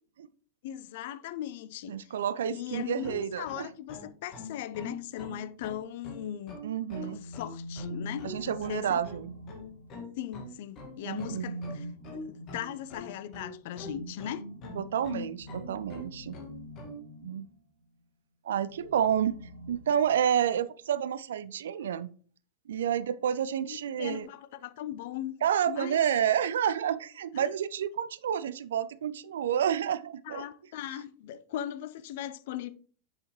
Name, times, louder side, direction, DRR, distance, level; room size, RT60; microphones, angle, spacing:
voice 1, 0.6-2.1 2.5-6.6 7.0-9.0 10.2-11.9 12.1-14.4 23.6-25.3 25.7-26.0 27.3-27.4 30.2-32.7, left 11 dB, 50° left, 0.5 m, -39 dB
voice 2, 1.9-3.7 6.6-7.2 8.2-9.3 11.0-11.6 14.8-16.4 17.2-17.5 18.4-19.3 19.7-22.1 22.7-24.3 25.4-30.5, right 9 dB, 60° right, 0.4 m, -29 dB
sound 1, 2.7-17.0, left 2 dB, 35° left, 1.7 m, -43 dB
sound 2, 7.0-10.3 11.0-17.6 18.6-20.5, equal, 80° left, 1.5 m, -45 dB
7.8 x 5.7 x 3.1 m
figure-of-eight pair, 90°, 0 cm